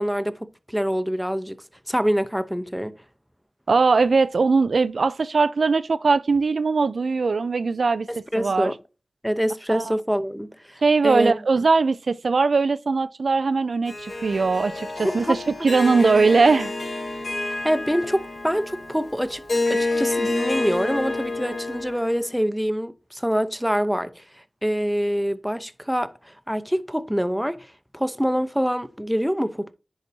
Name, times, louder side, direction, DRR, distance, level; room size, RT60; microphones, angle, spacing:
voice 1, 0.0-2.9 8.1-8.7 9.2-11.3 15.0-15.7 17.4-19.4 19.7-24.2 24.6-29.7, equal, ahead, 0.7 m, -25 dB
voice 2, 3.7-8.1 8.4-8.7 9.7-10.0 10.8-16.7, right 4 dB, 85° right, 0.3 m, -20 dB
Harp, 13.9-22.3, left 2 dB, 85° left, 2.9 m, -28 dB
10.5 x 4.2 x 2.7 m
cardioid pair, 45°, 0 cm